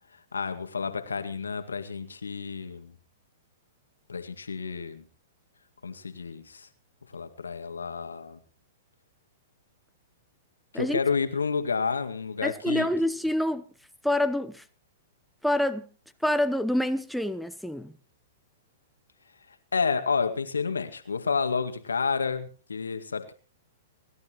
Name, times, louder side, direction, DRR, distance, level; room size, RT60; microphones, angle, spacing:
voice 1, 0.1-2.9 4.1-5.1 5.8-6.7 7.1-8.4 10.7-12.9 19.7-23.3, left 5 dB, 80° left, 1.9 m, -30 dB
voice 2, 12.4-13.7 14.0-14.6 15.4-15.9 16.2-17.9, left 1 dB, ahead, 0.9 m, -26 dB
30.0 x 12.0 x 3.0 m
figure-of-eight pair, 110°, 0 cm